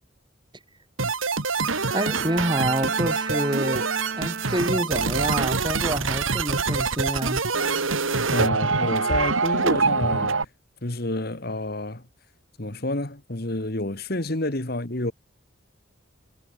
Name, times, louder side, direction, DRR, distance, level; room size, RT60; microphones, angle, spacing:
sound 1, 1.0-10.4, right 4 dB, 90° right, 2.7 m, -25 dB
Bowed string instrument, 1.6-5.2 5.6-6.0, right 4 dB, 50° right, 2.5 m, -34 dB
voice 1, 1.9-7.4, right 1 dB, 25° right, 3.7 m, -27 dB
voice 2, 8.3-10.5 10.8-12.0 12.6-15.1, left 1 dB, 50° left, 2.0 m, -29 dB
head